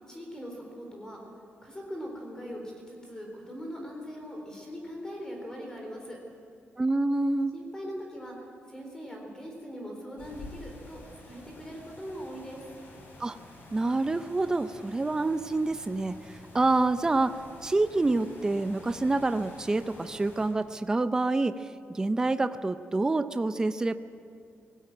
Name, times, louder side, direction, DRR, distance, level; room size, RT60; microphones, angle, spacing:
voice 1, 0.1-1.2 1.6-2.6 2.9-6.2 7.5-8.3 8.7-12.7, equal, 15° left, 0 dB, 3.9 m, -41 dB
voice 2, 6.8-7.5 13.2-13.4 13.7-23.9, right 2 dB, 15° right, 10 dB, 0.5 m, -27 dB
sound 1, 10.2-20.5, left 2 dB, 55° left, 6.5 m, -49 dB
19.5 x 16.0 x 9.1 m, 2.3 s
wide cardioid pair, 150°, 4 cm